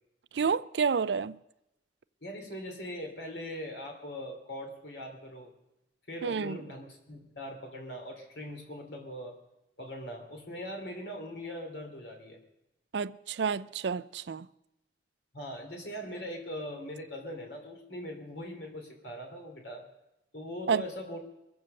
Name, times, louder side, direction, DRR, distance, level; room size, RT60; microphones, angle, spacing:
voice 1, 0.3-1.4 6.2-6.6 12.9-14.5 20.7-20.8, right 6 dB, 75° right, 0.5 m, -29 dB
voice 2, 2.2-5.5 6.1-9.4 9.8-12.4 15.3-19.9 20.3-21.2, equal, 70° left, 3.0 m, -41 dB
22.5 x 7.9 x 6.5 m
head